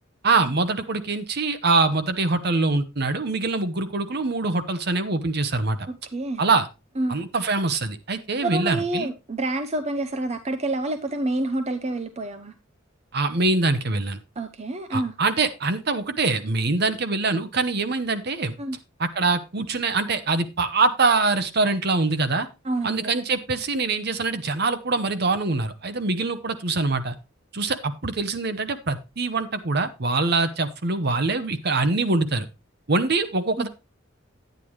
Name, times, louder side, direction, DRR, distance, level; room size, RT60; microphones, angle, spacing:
voice 1, 0.2-5.9 6.4-6.7 7.1-9.1 13.1-14.2 14.9-18.5 19.0-22.5 22.8-27.1 27.5-32.5 32.9-33.7, right 3 dB, 55° right, 11 dB, 0.9 m, -24 dB
voice 2, 5.9-6.4 7.0-7.2 8.4-12.5 14.4-15.1 18.6-18.8 22.6-23.1 33.6-33.7, right 2 dB, 35° right, 8 dB, 0.6 m, -28 dB
10.0 x 9.2 x 3.1 m, 0.26 s
head